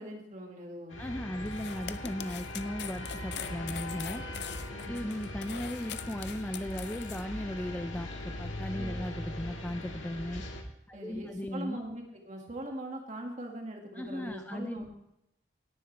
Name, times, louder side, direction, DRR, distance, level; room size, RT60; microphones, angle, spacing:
voice 1, 0.0-1.0 4.7-5.0 8.8-9.1 10.9-14.9, right 1 dB, 40° right, 1 dB, 2.1 m, -41 dB
sound 1, 0.9-10.6, left 1 dB, 80° left, 1.9 m, -40 dB
voice 2, 1.0-4.2 4.9-10.4 10.9-11.8 13.9-14.9, equal, 10° left, 7 dB, 0.4 m, -37 dB
sound 2, 1.5-7.2, left 9 dB, 60° left, 0.6 m, -43 dB
18.0 x 10.5 x 3.4 m, 0.84 s
head